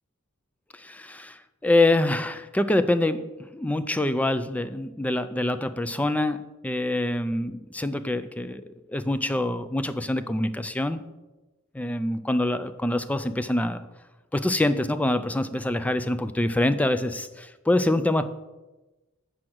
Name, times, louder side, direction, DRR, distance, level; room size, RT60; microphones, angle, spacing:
voice 1, 0.8-8.6 8.9-11.0 11.7-13.8 14.3-18.3, left 1 dB, 5° left, 12 dB, 0.3 m, -25 dB
7.7 x 4.8 x 6.1 m, 1.1 s
head